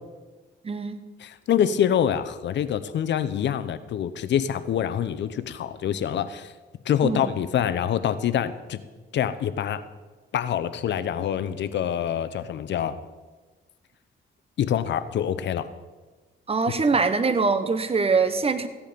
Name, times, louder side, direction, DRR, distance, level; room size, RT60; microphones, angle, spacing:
voice 1, 0.6-1.0 7.0-7.3 16.5-18.7, right 4 dB, 30° right, 11 dB, 1.1 m, -23 dB
voice 2, 1.2-6.5 6.9-8.8 9.1-9.8 10.3-13.0 14.6-15.7, left 9 dB, 65° left, 14 dB, 0.8 m, -25 dB
15.5 x 10.5 x 5.2 m, 1.3 s
cardioid pair, 90°, 20 cm